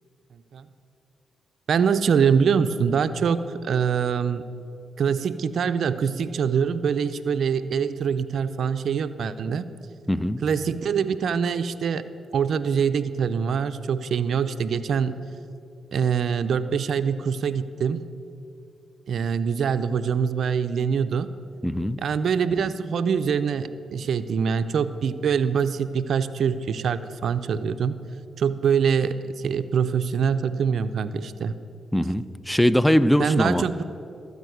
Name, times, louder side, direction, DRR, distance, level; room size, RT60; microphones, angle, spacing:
voice 1, 0.3-0.7 1.7-4.4 5.0-9.7 10.4-12.0 12.3-15.2 15.9-18.0 19.1-21.3 22.0-27.9 28.4-31.6 33.2-33.8, right 6 dB, 70° right, 12 dB, 0.4 m, -24 dB
voice 2, 10.1-10.4 21.6-22.0 31.9-33.6, equal, 5° left, 15 dB, 0.5 m, -21 dB
14.0 x 4.9 x 7.8 m, 2.6 s
supercardioid pair, 50°, 0 cm